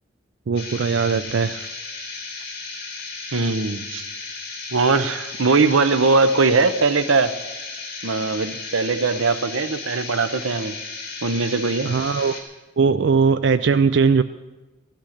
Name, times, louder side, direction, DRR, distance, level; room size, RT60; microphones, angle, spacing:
voice 1, 0.5-1.7 11.8-12.4 12.8-14.2, right 5 dB, 60° right, 11 dB, 0.4 m, -19 dB
sound 1, 0.6-12.4, left 4 dB, 50° left, 3.4 m, -34 dB
voice 2, 3.3-4.0 4.7-7.3 8.0-10.7 11.2-11.9, right 4 dB, 90° right, 12 dB, 0.8 m, -20 dB
15.5 x 12.0 x 6.6 m, 1.1 s
head